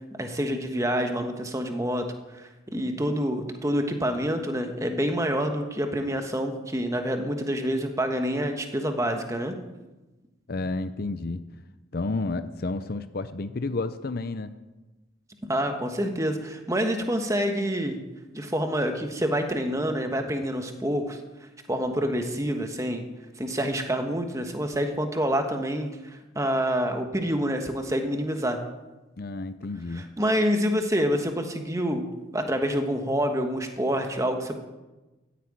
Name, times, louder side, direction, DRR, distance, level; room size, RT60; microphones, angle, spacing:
voice 1, 0.2-2.0 2.3-9.5 15.4-18.0 18.3-21.2 21.7-23.0 23.4-28.6 29.9-32.1 32.3-34.6, equal, 15° right, 5 dB, 1.3 m, -27 dB
voice 2, 10.5-11.4 11.9-14.5 29.2-30.1, left 3 dB, 50° left, 11 dB, 0.6 m, -31 dB
13.5 x 8.5 x 8.8 m, 1.1 s
head